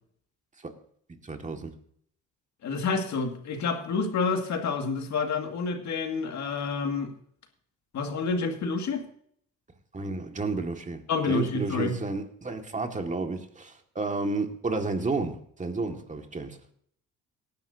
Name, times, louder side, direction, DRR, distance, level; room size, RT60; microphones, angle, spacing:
voice 1, 1.2-1.7 9.9-16.7, right 3 dB, 25° right, 5 dB, 1.7 m, -32 dB
voice 2, 2.6-7.1 7.9-9.0 11.1-12.0, left 4 dB, 65° left, 5 dB, 2.0 m, -28 dB
18.0 x 10.5 x 2.7 m, 0.63 s
cardioid pair, 90°, 30 cm